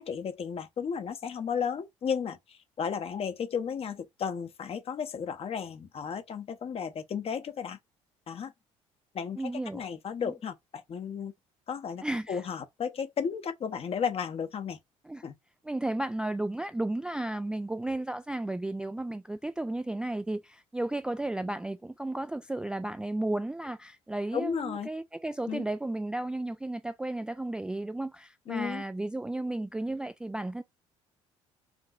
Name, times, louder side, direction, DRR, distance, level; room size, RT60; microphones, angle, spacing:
voice 1, 0.0-7.8 8.3-8.5 9.1-9.4 9.7-11.3 11.7-14.8 15.2-15.3 24.3-24.9 25.5-25.6 28.5-28.8, left 7 dB, 35° left, 0.9 m, -34 dB
voice 2, 9.4-9.9 10.2-10.3 12.0-12.4 15.0-15.2 15.6-30.6, right 2 dB, 5° right, 0.3 m, -33 dB
5.2 x 2.7 x 2.4 m
figure-of-eight pair, 55°, 17 cm